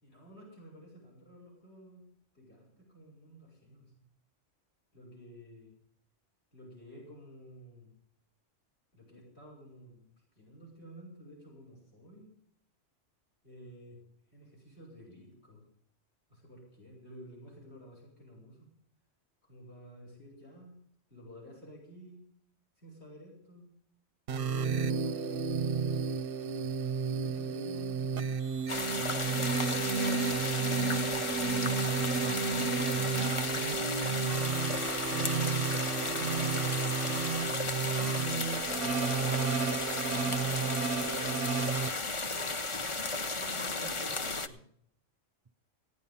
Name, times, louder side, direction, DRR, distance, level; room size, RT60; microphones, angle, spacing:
voice 1, 0.0-2.1 2.3-3.9 4.9-5.8 6.5-8.0 8.9-12.3 13.4-14.0 14.3-15.6 16.3-18.7 19.4-20.8 21.1-22.2 22.8-23.7 24.3-25.9 27.1-28.3 42.2-42.6 43.1-44.6, equal, 60° left, -3 dB, 5.7 m, -52 dB
sound 1, 24.3-41.9, right 5 dB, 55° right, 0.8 m, -32 dB
sound 2, 28.7-44.5, left 3 dB, 30° left, 0.7 m, -34 dB
voice 2, 31.2-33.1, right 5 dB, 40° right, 8 dB, 0.4 m, -46 dB
16.5 x 10.0 x 5.7 m, 0.65 s
omnidirectional pair, 1.2 m